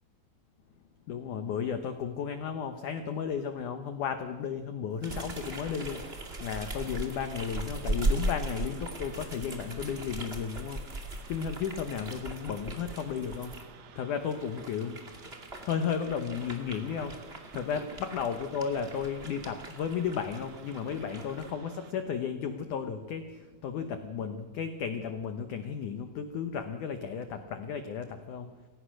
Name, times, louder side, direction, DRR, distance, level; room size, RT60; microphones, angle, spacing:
voice 1, 1.1-15.0 15.6-28.5, left 7 dB, 75° left, 8 dB, 1.8 m, -34 dB
sound 1, 5.0-13.6 14.2-21.5, right 2 dB, 25° right, 1.3 m, -38 dB
sound 2, 5.0-21.9, right 7 dB, 80° right, 1.5 m, -53 dB
29.0 x 16.5 x 6.4 m, 1.2 s
omnidirectional pair, 5.2 m